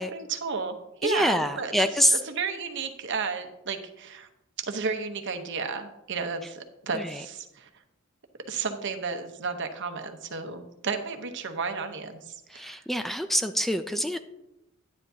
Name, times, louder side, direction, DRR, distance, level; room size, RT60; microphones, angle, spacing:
voice 1, 0.0-4.3 4.7-7.7 8.5-12.8, right 5 dB, 60° right, 7 dB, 0.9 m, -33 dB
voice 2, 1.0-2.2 6.9-7.2 12.5-14.2, equal, ahead, 8 dB, 0.3 m, -26 dB
10.5 x 10.0 x 2.8 m, 0.91 s
head